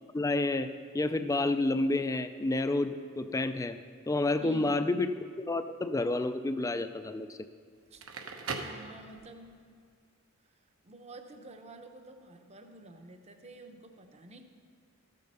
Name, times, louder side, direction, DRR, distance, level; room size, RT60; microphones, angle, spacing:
voice 1, 0.1-0.7 0.9-3.8 4.1-5.1 5.4-7.4, left 2 dB, 15° left, 10 dB, 0.3 m, -29 dB
voice 2, 4.4-4.8 7.9-8.0 8.6-9.5 10.8-14.4, right 2 dB, 30° right, 6 dB, 0.8 m, -48 dB
Crackle, 7.8-9.5, right 4 dB, 80° right, 1.0 m, -39 dB
13.5 x 7.5 x 5.5 m, 2.1 s
head